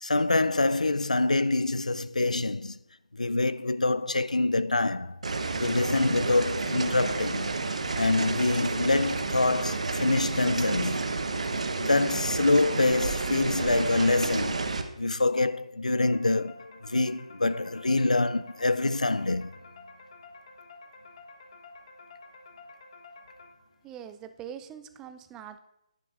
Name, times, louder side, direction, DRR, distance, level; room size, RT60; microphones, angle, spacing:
voice 1, 0.0-2.8 3.1-5.2 5.6-7.6 8.0-11.0 11.8-14.7 15.0-19.5, left 2 dB, 90° left, 0.4 m, -25 dB
sound 1, 5.2-14.8, right 3 dB, 70° right, 0.9 m, -30 dB
sound 2, 16.0-23.9, left 3 dB, 50° left, 1.3 m, -50 dB
voice 2, 23.8-25.6, right 9 dB, 15° right, 0.4 m, -43 dB
10.5 x 10.0 x 2.4 m
figure-of-eight pair, 145°, 4 cm